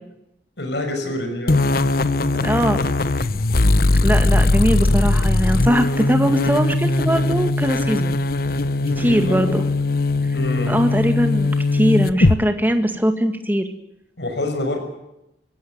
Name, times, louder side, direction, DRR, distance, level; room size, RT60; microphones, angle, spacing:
voice 1, 0.6-1.7 8.8-9.6 10.3-10.8 14.2-14.8, left 1 dB, 75° left, 6 dB, 6.4 m, -26 dB
sound 1, 1.5-12.4, left 2 dB, 55° left, 0.9 m, -19 dB
voice 2, 2.4-2.8 4.0-8.2 9.0-9.6 10.7-13.7, equal, 10° right, 7 dB, 2.0 m, -20 dB
25.0 x 17.0 x 9.5 m, 0.88 s
head